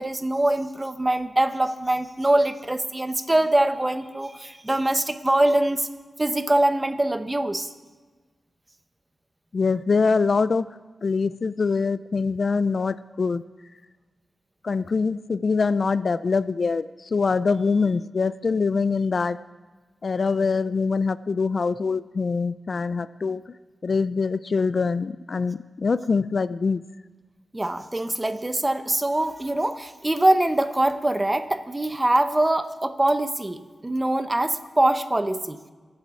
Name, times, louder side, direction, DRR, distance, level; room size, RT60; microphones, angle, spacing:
voice 1, 0.0-5.9 6.2-7.7 27.5-35.6, right 1 dB, 15° right, 10 dB, 0.7 m, -23 dB
voice 2, 9.5-10.7 11.0-13.4 14.6-19.4 20.0-23.4 23.8-26.8, left 4 dB, 50° left, 16 dB, 0.3 m, -24 dB
22.5 x 7.8 x 4.8 m, 1.4 s
wide cardioid pair, 120°, 0 cm